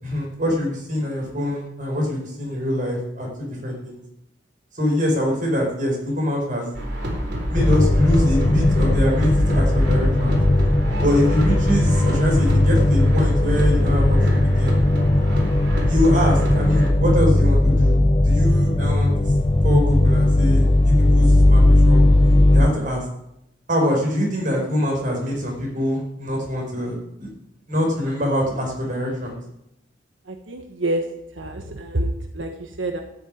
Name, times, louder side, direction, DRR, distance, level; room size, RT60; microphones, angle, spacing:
voice 1, 0.0-3.3 3.6-4.0 4.7-6.7 7.5-10.4 11.0-14.8 15.9-18.0 18.2-19.1 19.6-23.0 23.7-27.3 27.7-29.4, left 1 dB, 45° right, -1 dB, 5.3 m, -24 dB
sound 1, 6.7-16.9, equal, 60° right, 4.1 m, -27 dB
sound 2, 7.5-22.7, left 1 dB, 25° left, 0.5 m, -17 dB
voice 2, 30.3-31.0 31.3-33.0, right 1 dB, 90° right, 4 dB, 1.3 m, -27 dB
13.0 x 7.4 x 9.9 m, 0.82 s
head